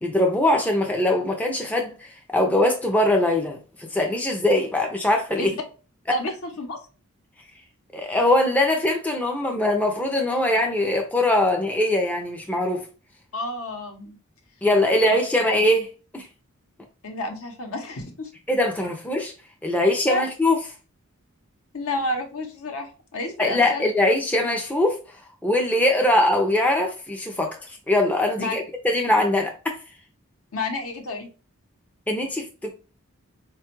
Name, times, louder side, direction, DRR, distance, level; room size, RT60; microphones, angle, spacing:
voice 1, 0.0-5.5 7.9-12.9 14.6-16.3 18.5-19.3 19.6-20.6 23.4-25.0 25.4-29.8 32.1-32.7, left 1 dB, 5° left, 0.4 m, -22 dB
voice 2, 6.1-6.8 13.3-14.2 15.0-15.2 17.0-18.3 20.1-20.2 21.7-23.8 28.4-28.5 30.5-31.3, left 1 dB, 70° left, 0.8 m, -30 dB
4.2 x 2.2 x 2.9 m
head